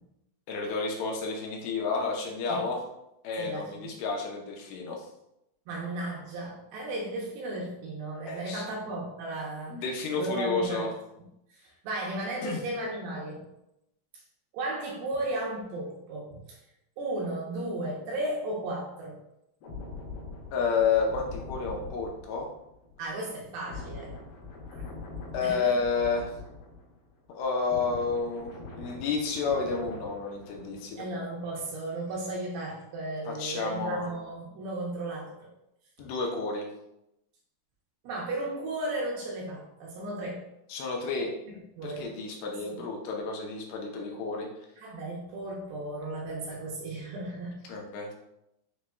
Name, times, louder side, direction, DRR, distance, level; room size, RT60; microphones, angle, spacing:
voice 1, 0.5-2.8 3.2-5.1 8.3-8.6 9.7-10.9 12.4-12.6 20.5-22.5 25.3-26.3 27.3-31.0 33.3-34.1 36.0-36.7 40.7-41.3 41.8-44.5 47.7-48.1, left 4 dB, 90° left, 0 dB, 2.8 m, -30 dB
voice 2, 3.4-3.9 5.7-9.8 10.2-10.9 11.5-13.5 14.5-16.6 17.0-19.2 23.0-24.2 24.7-24.9 25.4-25.8 31.0-35.5 38.0-40.4 41.5-42.1 42.7-42.8 44.8-47.7, right 2 dB, 75° right, -2 dB, 2.4 m, -35 dB
sound 1, 19.6-27.1 27.4-31.1 31.4-31.6, left 3 dB, 70° left, 2.8 m, -43 dB
7.0 x 3.1 x 2.2 m, 0.84 s
omnidirectional pair, 4.7 m